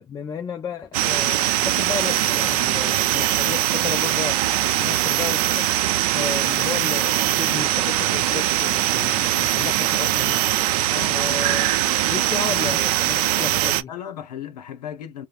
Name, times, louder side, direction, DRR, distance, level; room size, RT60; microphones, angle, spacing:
voice 1, 0.0-4.4 4.8-5.7 6.1-10.4 11.1-11.8 12.1-13.9, left 6 dB, 20° left, 0.3 m, -33 dB
sound 1, 0.9-13.8, right 14 dB, 65° right, 0.5 m, -21 dB
voice 2, 10.9-11.5 12.1-12.8 13.9-15.3, left 9 dB, 80° left, 0.7 m, -36 dB
3.2 x 2.0 x 2.4 m
hypercardioid pair, 100°, 20 cm